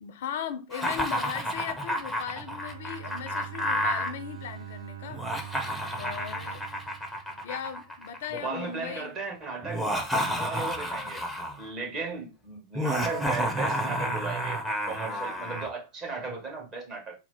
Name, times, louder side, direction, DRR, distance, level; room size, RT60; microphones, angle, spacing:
voice 1, 0.0-5.2 5.9-6.6 7.4-9.2, left 9 dB, 55° left, 0.5 m, -37 dB
Laughter, 0.7-4.1 5.1-8.4 9.6-11.6 12.7-15.7, equal, ahead, 0.8 m, -31 dB
Bowed string instrument, 2.2-8.1, right 12 dB, 70° right, 0.6 m, -44 dB
voice 2, 8.3-10.1 10.4-11.2 11.6-17.2, right 4 dB, 30° right, 1.8 m, -36 dB
4.3 x 2.0 x 4.1 m
figure-of-eight pair, 90°, 0 cm